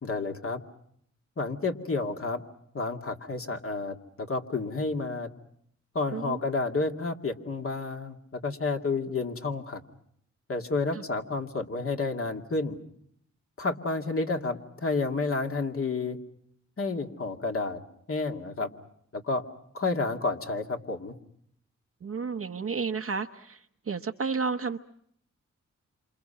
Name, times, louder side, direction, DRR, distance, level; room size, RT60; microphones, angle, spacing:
voice 1, 0.0-0.6 1.4-2.4 2.7-5.3 5.9-9.8 10.5-12.8 13.6-16.2 16.8-17.8 18.1-18.7 19.1-19.4 19.7-21.1, left 3 dB, 50° left, 3 dB, 2.5 m, -30 dB
voice 2, 22.0-24.8, right 5 dB, 50° right, 4 dB, 1.0 m, -32 dB
27.5 x 27.5 x 5.8 m, 0.68 s
cardioid pair, 65°, 29 cm